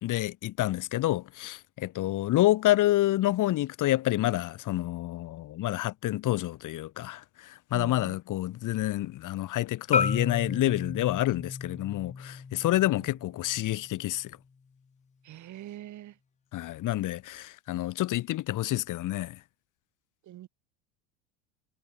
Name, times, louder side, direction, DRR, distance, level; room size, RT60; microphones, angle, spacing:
voice 1, 0.0-14.3 16.5-19.4, left 15 dB, 50° left, 3.7 m, -28 dB
voice 2, 7.7-8.2 13.0-13.1 15.2-16.1 20.3-20.5, right 13 dB, 45° right, 5.0 m, -43 dB
Marimba xylophone, 9.9-14.1, left 5 dB, 15° left, 2.0 m, -33 dB
supercardioid pair, 95°, 40 cm